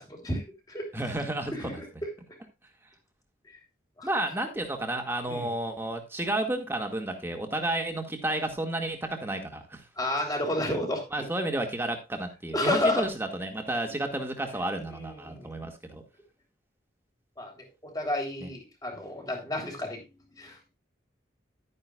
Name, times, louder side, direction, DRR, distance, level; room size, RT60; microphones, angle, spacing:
voice 1, 0.0-1.1 1.5-2.1 4.0-4.1 5.3-5.5 10.0-11.3 12.5-13.1 14.9-15.5 17.4-20.0 20.4-20.6, left 1 dB, 20° left, 1 dB, 3.5 m, -31 dB
voice 2, 0.9-1.8 4.0-9.8 11.1-16.0 18.4-18.5, right 1 dB, 15° right, 3 dB, 1.9 m, -31 dB
12.0 x 9.9 x 2.4 m, 0.25 s
head